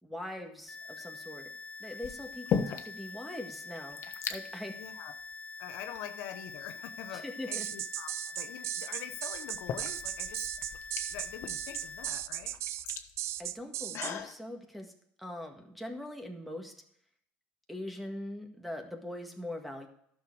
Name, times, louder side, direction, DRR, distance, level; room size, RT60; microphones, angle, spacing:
voice 1, 0.0-1.5 1.8-4.0 4.3-4.7 7.1-7.7 13.4-14.9 15.2-16.7 17.7-19.9, left 1 dB, ahead, 4 dB, 1.8 m, -42 dB
sound 1, 0.7-12.1, left 3 dB, 25° left, 0.5 m, -45 dB
sound 2, 0.8-1.2 2.0-3.1 3.4-3.5 3.7-4.4 5.2-5.3 5.9-6.8 8.5-8.6 9.3-14.3, left 7 dB, 55° left, 1.1 m, -38 dB
voice 2, 4.7-5.2 5.6-10.8 11.1-12.6, left 11 dB, 80° left, 8 dB, 0.8 m, -45 dB
sound 3, 7.5-14.1, right 13 dB, 60° right, 0.4 m, -36 dB
11.5 x 6.5 x 4.8 m, 0.68 s
supercardioid pair, 100°, 5 cm